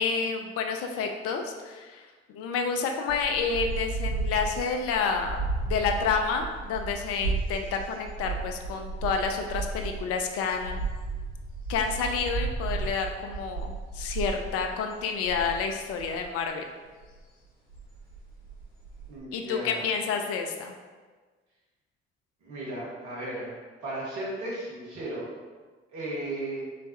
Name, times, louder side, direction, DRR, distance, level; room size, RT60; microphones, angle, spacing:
voice 1, 0.0-10.9 11.7-16.6 19.3-20.7, left 5 dB, 50° left, 4 dB, 0.4 m, -29 dB
sound 1, 3.1-16.5 17.0-17.2 17.5-19.2, right 3 dB, 85° left, 0.7 m, -34 dB
voice 2, 19.1-19.8 22.4-25.3 25.9-26.6, right 1 dB, 65° right, -5 dB, 1.1 m, -35 dB
3.3 x 3.1 x 2.6 m, 1.4 s
figure-of-eight pair, 45°, 31 cm